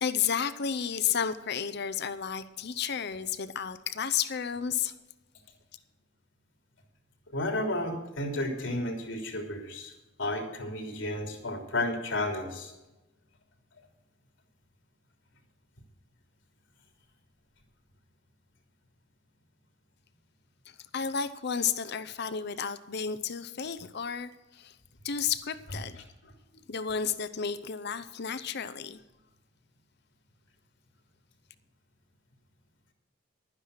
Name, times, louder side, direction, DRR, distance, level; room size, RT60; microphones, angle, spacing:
voice 1, 0.0-4.9 20.9-24.7 25.0-25.9 26.7-29.0, left 7 dB, 60° left, 13 dB, 0.7 m, -32 dB
voice 2, 7.3-9.9 10.2-12.7, left 1 dB, 80° left, 2 dB, 3.3 m, -32 dB
12.0 x 9.9 x 6.5 m, 1.0 s
head